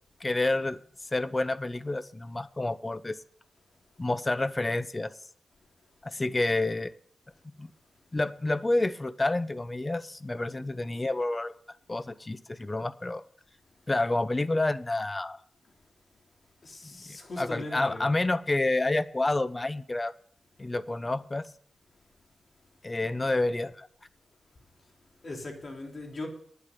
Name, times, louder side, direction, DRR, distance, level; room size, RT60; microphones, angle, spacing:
voice 1, 0.2-0.8 1.1-3.2 4.0-5.1 6.0-6.9 7.6-7.7 8.1-11.5 11.9-13.2 13.9-15.4 16.9-20.1 20.6-21.5 22.8-23.9, left 2 dB, 25° left, 0.7 m, -29 dB
voice 2, 16.6-18.1 25.2-26.3, left 2 dB, 50° left, 3.7 m, -39 dB
11.5 x 9.4 x 6.8 m
cardioid pair, 75°, 0 cm